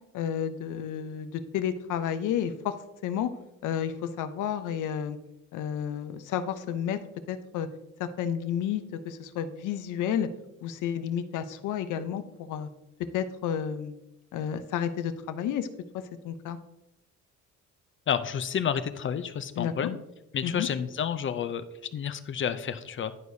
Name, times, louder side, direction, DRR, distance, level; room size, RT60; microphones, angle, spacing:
voice 1, 0.1-2.8 3.0-3.3 3.6-5.2 5.5-7.0 7.3-7.7 8.0-10.3 10.6-12.7 13.1-13.9 14.3-15.7 15.9-16.6 19.6-19.7 20.4-20.7, left 9 dB, 85° left, 11 dB, 0.7 m, -31 dB
voice 2, 18.1-20.0 20.3-21.6 21.9-23.1, left 8 dB, 40° left, 12 dB, 0.5 m, -30 dB
11.0 x 4.7 x 2.7 m, 0.92 s
cardioid pair, 90°, 30 cm